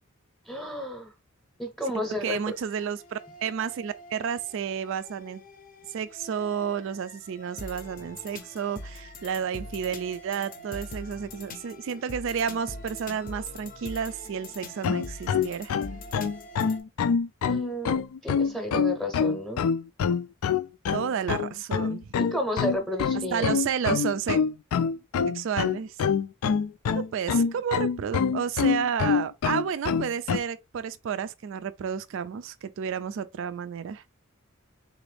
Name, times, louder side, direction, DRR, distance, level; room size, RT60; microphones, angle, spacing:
voice 1, 0.5-1.1 1.6-2.4 17.4-19.6 22.3-23.5, left 1 dB, ahead, 0.7 m, -31 dB
sound 1, 2.1-16.8, left 1 dB, 40° left, 0.6 m, -44 dB
voice 2, 2.2-5.4 5.9-15.7 20.9-22.2 23.3-24.4 25.3-26.0 27.1-34.0, right 7 dB, 60° right, 0.3 m, -31 dB
sound 2, 14.8-30.4, left 6 dB, 80° left, 0.3 m, -25 dB
3.8 x 2.5 x 3.2 m
head